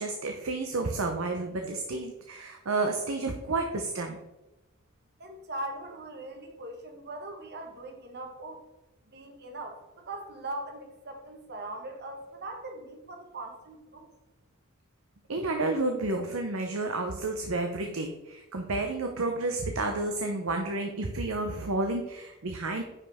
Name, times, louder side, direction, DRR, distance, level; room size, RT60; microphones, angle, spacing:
voice 1, 0.0-4.2 15.3-22.8, right 2 dB, 75° right, 4 dB, 0.8 m, -31 dB
voice 2, 5.2-8.6 9.1-14.1, right 2 dB, 50° right, 4 dB, 1.4 m, -40 dB
9.5 x 5.5 x 3.5 m, 1.0 s
head